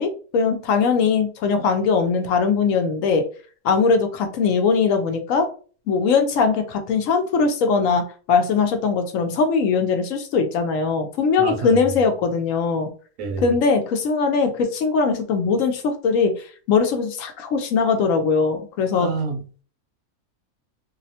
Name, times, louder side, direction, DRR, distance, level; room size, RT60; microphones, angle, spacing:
voice 1, 0.0-3.2 3.6-5.5 5.9-12.9 13.4-19.1, left 5 dB, 70° left, 0.9 m, -20 dB
voice 2, 11.4-11.8 13.2-13.5 18.9-19.6, right 3 dB, 70° right, 0.9 m, -28 dB
2.7 x 2.1 x 2.7 m
omnidirectional pair, 1.5 m